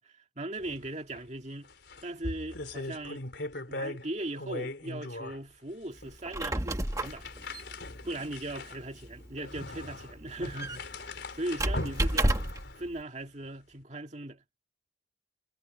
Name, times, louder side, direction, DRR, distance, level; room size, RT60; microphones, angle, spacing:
voice 1, 0.0-1.7 2.0-3.3 3.7-7.3 8.0-12.4 12.8-14.4, right 1 dB, 40° right, 2.1 m, -39 dB
sound 1, 0.6-0.9 1.1-1.2 1.6-4.1 4.4-5.4 6.0-6.2 6.8-12.9, left 2 dB, 70° left, 4.0 m, -40 dB
Squeak, 6.1-12.7, right 1 dB, 15° right, 1.2 m, -32 dB
head